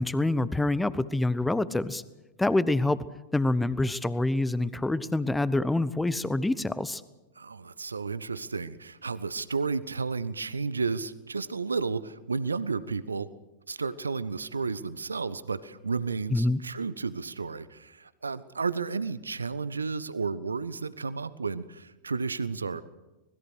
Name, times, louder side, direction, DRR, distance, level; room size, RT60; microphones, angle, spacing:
voice 1, 0.0-2.0 2.4-3.0 3.3-7.0 16.3-16.6, left 2 dB, 5° left, 17 dB, 1.0 m, -26 dB
voice 2, 7.4-13.3 13.7-22.8, right 4 dB, 75° right, 16 dB, 0.9 m, -32 dB
26.0 x 20.5 x 6.4 m, 1.0 s
figure-of-eight pair, 90°, 0 cm